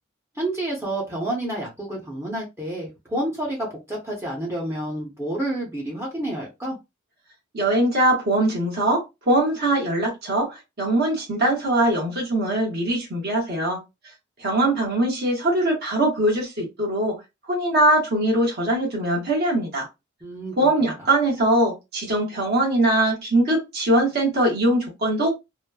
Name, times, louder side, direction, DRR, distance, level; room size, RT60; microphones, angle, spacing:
voice 1, 0.4-6.8 20.2-20.5, right 1 dB, 10° right, 0.7 m, -29 dB
voice 2, 7.5-13.8 14.4-19.9 20.6-25.3, right 1 dB, 50° right, 1.0 m, -22 dB
3.0 x 2.0 x 2.2 m
head